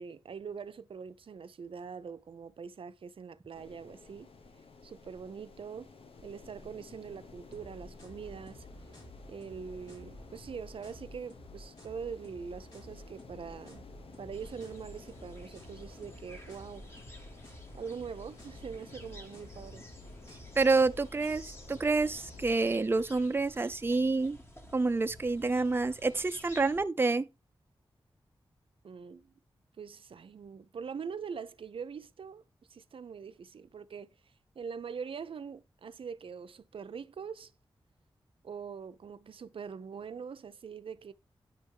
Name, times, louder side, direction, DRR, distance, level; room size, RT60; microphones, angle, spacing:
voice 1, 0.0-4.3 4.8-5.9 6.2-8.7 9.3-13.8 14.2-16.9 17.7-19.8 28.8-29.3 29.8-32.4 32.7-34.1 34.6-37.5 38.4-41.1, right 6 dB, 70° right, 0.5 m, -43 dB
sound 1, 3.5-22.6, left 4 dB, 80° left, 0.9 m, -54 dB
sound 2, 7.5-22.5, equal, 50° left, 4.8 m, -51 dB
sound 3, 14.3-26.8, equal, 25° left, 1.6 m, -53 dB
voice 2, 20.6-24.4 24.7-27.3, right 3 dB, 25° right, 0.5 m, -28 dB
9.7 x 3.4 x 4.6 m
cardioid pair, 65°, 9 cm